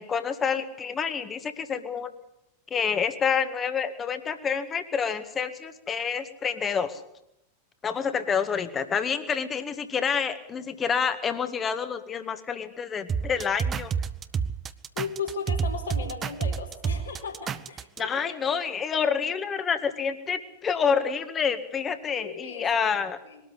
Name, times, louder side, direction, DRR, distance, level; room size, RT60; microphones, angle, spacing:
voice 1, 0.0-2.1 2.7-7.0 7.8-13.9 18.0-23.2, left 6 dB, 20° left, 10 dB, 1.8 m, -28 dB
sound 1, 13.1-18.0, right 6 dB, 25° right, 0.9 m, -29 dB
voice 2, 14.9-18.4 22.2-22.7 23.3-23.4, left 6 dB, 70° left, 2 dB, 4.5 m, -36 dB
21.5 x 13.0 x 9.8 m, 0.83 s
figure-of-eight pair, 90°, 0 cm